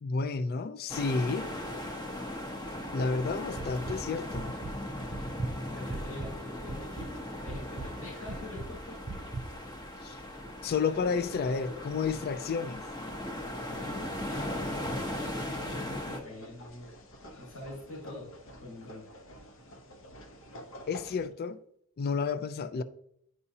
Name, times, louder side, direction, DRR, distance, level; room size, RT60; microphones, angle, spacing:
voice 1, 0.0-1.5 2.9-4.5 10.0-10.2 10.6-12.8 20.9-21.6 22.0-22.8, left 4 dB, 45° left, 0.4 m, -31 dB
sound 1, 0.9-16.2, left 1 dB, 20° left, 0.8 m, -38 dB
sound 2, 3.6-4.0 4.3-4.7 5.1-6.4 6.7-7.1 7.5-7.9 8.3-8.7 9.1-9.5, right 3 dB, 30° right, 0.4 m, -37 dB
voice 2, 5.7-9.2 10.1-12.0 13.6-16.9 17.2-19.0, left 2 dB, 85° left, 3.0 m, -46 dB
sound 3, 14.7-21.3, equal, 60° left, 0.9 m, -49 dB
9.8 x 4.9 x 2.7 m
head